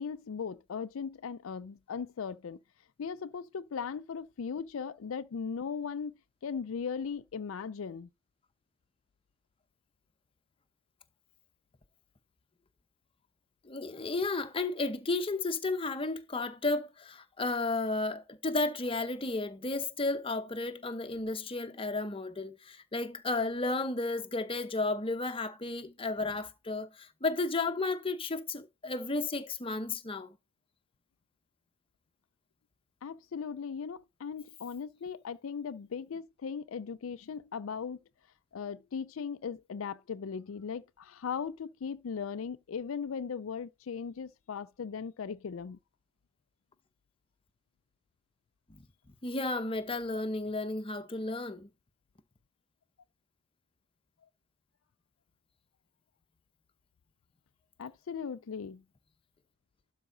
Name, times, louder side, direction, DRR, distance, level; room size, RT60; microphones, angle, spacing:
voice 1, 0.0-2.6 3.0-6.1 6.4-8.1 33.0-38.0 38.5-45.8 57.8-58.8, left 6 dB, 80° left, 0.4 m, -38 dB
voice 2, 13.6-30.4 48.7-48.8 49.2-51.7, left 2 dB, 25° left, 0.9 m, -33 dB
12.0 x 4.8 x 3.9 m
head